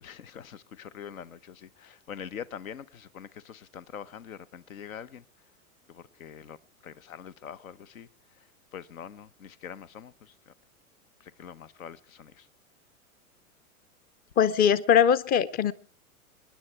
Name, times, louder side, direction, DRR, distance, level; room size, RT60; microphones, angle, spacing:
voice 1, 0.0-5.2 5.9-6.6 6.8-8.1 8.7-10.5 11.2-12.5, left 8 dB, 65° left, 1.0 m, -44 dB
voice 2, 14.4-15.7, left 8 dB, 20° left, 0.7 m, -21 dB
27.0 x 10.5 x 4.5 m
figure-of-eight pair, 95°, 44 cm